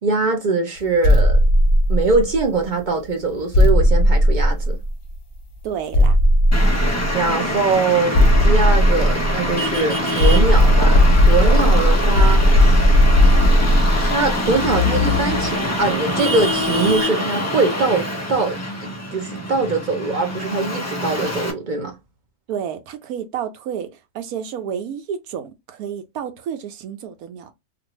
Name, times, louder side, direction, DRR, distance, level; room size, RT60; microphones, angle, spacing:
voice 1, 0.0-1.4 1.9-4.8 7.1-12.8 14.0-21.9, right 3 dB, 55° right, 0.5 m, -22 dB
sound 1, 1.0-2.5 3.5-5.1 5.9-7.3 8.1-9.7 10.2-15.5, left 1 dB, 45° left, 0.8 m, -15 dB
voice 2, 5.6-6.2 7.3-7.6 22.5-23.9 24.1-27.5, right 8 dB, 75° right, 1.1 m, -30 dB
Traffic noise roadway noise, 6.5-21.5, left 1 dB, 20° left, 0.4 m, -24 dB
2.6 x 2.5 x 3.0 m
omnidirectional pair, 1.6 m